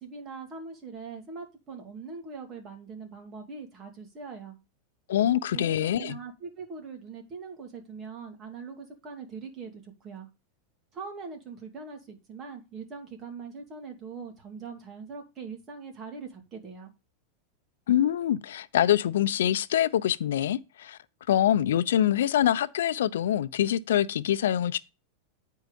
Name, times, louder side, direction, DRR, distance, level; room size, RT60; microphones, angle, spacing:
voice 1, 0.0-4.5 5.5-10.3 10.9-16.9, right 5 dB, 30° right, 2.5 m, -42 dB
voice 2, 5.1-6.2 17.9-21.0 21.3-24.8, left 11 dB, 85° left, 0.6 m, -25 dB
9.4 x 4.7 x 5.2 m
supercardioid pair, 135°, 0 cm